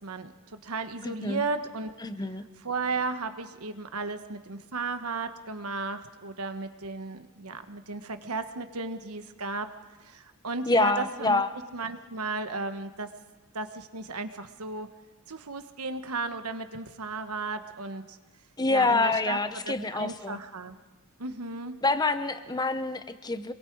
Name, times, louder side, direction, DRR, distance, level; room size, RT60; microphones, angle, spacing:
voice 1, 0.0-1.9 2.6-9.7 10.0-11.4 11.7-13.1 13.5-14.9 15.3-18.2 18.7-20.8 21.2-21.8, right 3 dB, 85° right, 8 dB, 1.3 m, -35 dB
voice 2, 1.0-1.4 2.0-2.4 10.7-11.5 18.6-20.4 21.8-23.5, left 3 dB, 20° left, 11 dB, 0.8 m, -26 dB
26.0 x 22.5 x 4.7 m, 1.2 s
head